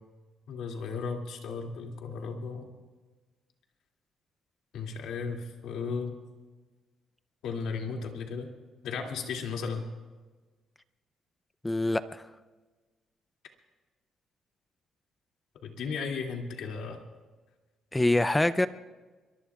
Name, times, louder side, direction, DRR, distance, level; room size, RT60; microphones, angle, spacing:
voice 1, 0.5-2.7 4.7-6.1 7.4-8.5 8.8-9.8 15.6-17.0, left 5 dB, 80° left, 2 dB, 2.4 m, -35 dB
voice 2, 11.6-12.3 17.9-18.7, left 1 dB, 10° left, 13 dB, 0.5 m, -25 dB
23.0 x 23.0 x 2.4 m, 1.3 s
cardioid pair, 135°, 0 cm